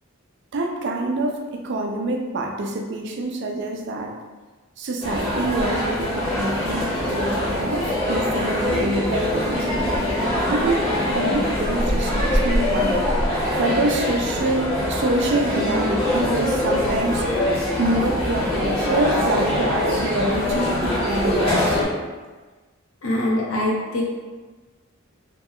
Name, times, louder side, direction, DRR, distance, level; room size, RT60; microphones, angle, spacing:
voice 1, 0.5-4.1 4.8-9.7 10.5-10.9 11.1-13.1 13.6-17.2 17.8-21.8, right 2 dB, 60° right, 2 dB, 0.4 m, -25 dB
sound 1, 5.0-21.8, left 1 dB, 25° left, 0.8 m, -23 dB
voice 2, 23.0-24.0, left 1 dB, 80° left, -4 dB, 0.8 m, -23 dB
2.9 x 2.1 x 3.7 m, 1.3 s
head